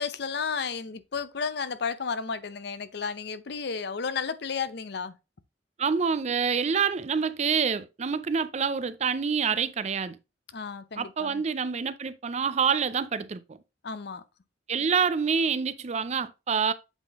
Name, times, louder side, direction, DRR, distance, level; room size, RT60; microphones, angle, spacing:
voice 1, 0.0-5.2 10.5-11.4 13.8-14.2, left 5 dB, 60° left, 0.6 m, -32 dB
voice 2, 5.8-10.2 11.0-13.4 14.7-16.7, right 6 dB, 35° right, 0.4 m, -27 dB
8.1 x 3.7 x 3.5 m
head